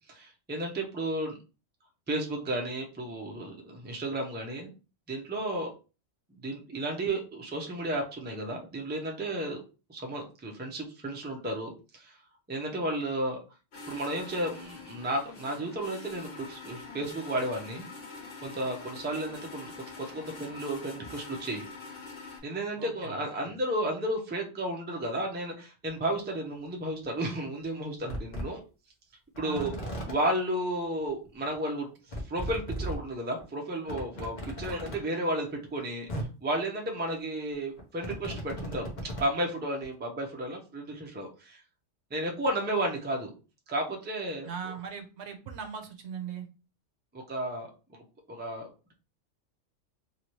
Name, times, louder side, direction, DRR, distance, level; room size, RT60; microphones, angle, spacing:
voice 1, 0.1-1.4 2.1-4.7 5.1-5.7 6.3-9.6 9.9-12.2 12.5-13.4 13.9-17.8 18.4-21.7 22.4-28.6 29.4-29.7 30.1-41.6 42.1-43.3 43.7-44.7 47.1-47.7 48.3-48.7, right 1 dB, 15° right, 1 dB, 0.4 m, -33 dB
sound 1, 13.7-22.4, left 4 dB, 75° left, 1.4 m, -45 dB
voice 2, 22.8-23.2 29.4-29.7 34.6-34.8 44.4-46.4, right 7 dB, 65° right, 5 dB, 0.9 m, -39 dB
sound 2, 25.9-26.0 27.1-27.2 27.6-27.7 28.1-28.4 29.3-30.1 31.3-31.4 31.5-31.6 32.1-33.0 33.4-33.5 33.9-35.0 35.8-35.9 36.1-36.3 37.5-39.3 39.8-39.9, right 1 dB, 40° left, 1.0 m, -36 dB
2.9 x 2.8 x 3.0 m, 0.32 s
omnidirectional pair, 1.3 m